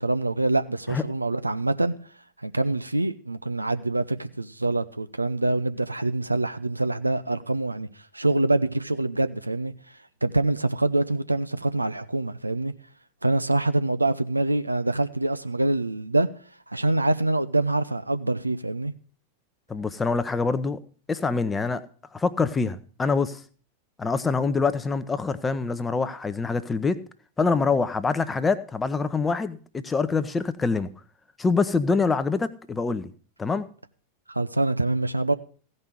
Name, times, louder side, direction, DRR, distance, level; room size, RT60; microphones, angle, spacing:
voice 1, 0.0-1.9 2.4-7.9 8.1-9.7 10.2-12.7 13.2-16.3 16.7-18.9 34.3-35.3, right 2 dB, 85° right, 0.6 m, -25 dB
voice 2, 19.7-20.8 21.1-21.8 22.1-23.4 24.0-27.0 27.4-30.9 31.4-33.1 33.4-33.6, left 4 dB, 15° left, 0.8 m, -25 dB
15.5 x 5.4 x 6.0 m
figure-of-eight pair, 90°, 0 cm